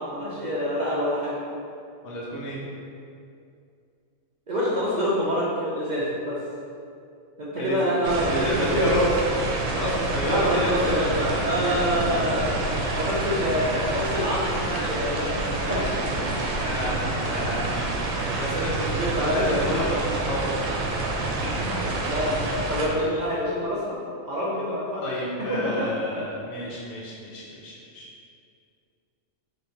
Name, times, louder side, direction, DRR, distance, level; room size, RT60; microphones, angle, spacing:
voice 1, 0.0-1.4 4.5-6.4 7.4-8.8 10.2-12.5 12.9-15.4 15.7-15.8 16.2-16.3 18.9-19.7 22.0-22.4 22.7-24.0 24.3-25.0 25.5-25.9, equal, 55° right, -7 dB, 0.5 m, -26 dB
voice 2, 2.0-2.6 7.5-9.3 9.7-11.0 11.3-11.5 11.9-12.5 15.6-20.9 21.5-22.0 25.0-28.1, equal, 55° left, -7 dB, 0.9 m, -30 dB
sound 1, 8.0-22.9, right 2 dB, 85° right, 1.0 m, -28 dB
3.1 x 2.6 x 4.3 m, 2.4 s
omnidirectional pair, 1.4 m